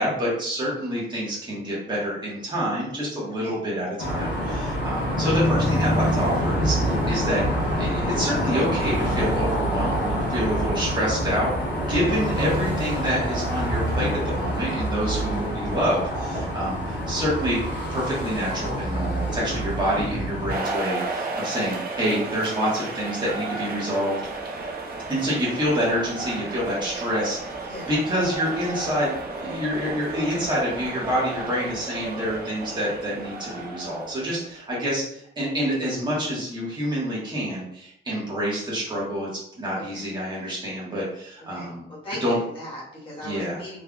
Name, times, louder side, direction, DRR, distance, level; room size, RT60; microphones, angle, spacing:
voice 1, 0.0-7.4 7.8-17.6 17.9-24.2 25.1-27.6 27.8-39.3 39.6-41.8 42.2-42.4 43.2-43.6, equal, 25° right, -6 dB, 1.4 m, -27 dB
sound 1, 4.0-20.6, equal, 60° left, 1.4 m, -26 dB
sound 2, 20.5-34.7, right 3 dB, 50° right, 0.6 m, -33 dB
voice 2, 27.6-28.0 39.9-40.0 41.5-43.8, left 1 dB, 25° left, -7 dB, 1.4 m, -38 dB
3.7 x 3.3 x 2.3 m, 0.72 s
wide cardioid pair, 175°, 19 cm